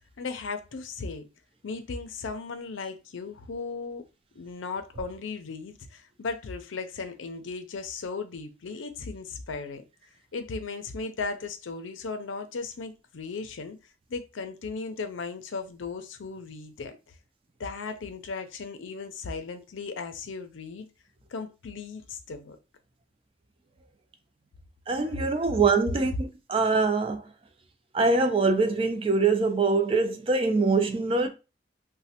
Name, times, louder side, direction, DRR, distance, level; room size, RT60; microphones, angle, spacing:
voice 1, 0.2-1.3 1.6-4.0 4.4-9.8 10.3-13.8 14.1-17.0 17.6-20.9 21.3-22.6 25.1-25.2, left 4 dB, 90° left, 0.5 m, -36 dB
voice 2, 24.9-27.3 27.9-31.3, right 4 dB, 30° right, 0.4 m, -24 dB
3.1 x 2.2 x 2.8 m
head